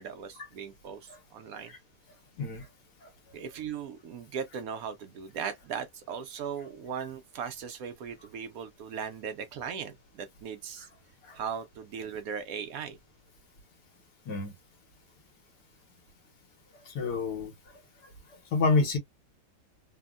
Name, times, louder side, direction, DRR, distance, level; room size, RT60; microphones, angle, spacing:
voice 1, 0.0-1.7 3.3-10.9 11.3-13.0, right 7 dB, 70° right, 0.9 m, -38 dB
voice 2, 16.9-17.5 18.5-19.0, left 3 dB, 80° left, 1.6 m, -28 dB
3.4 x 2.1 x 2.3 m
omnidirectional pair, 1.8 m